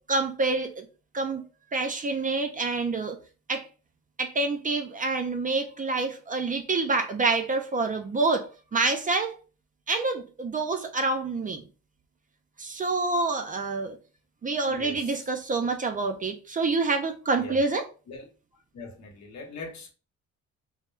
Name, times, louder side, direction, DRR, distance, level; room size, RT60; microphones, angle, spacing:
voice 1, 0.1-0.9 1.1-1.4 1.7-3.2 3.5-3.6 4.2-9.4 9.9-11.6 12.6-14.0 14.4-17.8, right 3 dB, 30° right, 0.4 m, -27 dB
voice 2, 14.7-15.3 17.3-17.6 18.1-18.3 18.5-19.9, left 3 dB, 65° left, 0.8 m, -42 dB
2.2 x 2.0 x 3.0 m
cardioid pair, 90°, 30 cm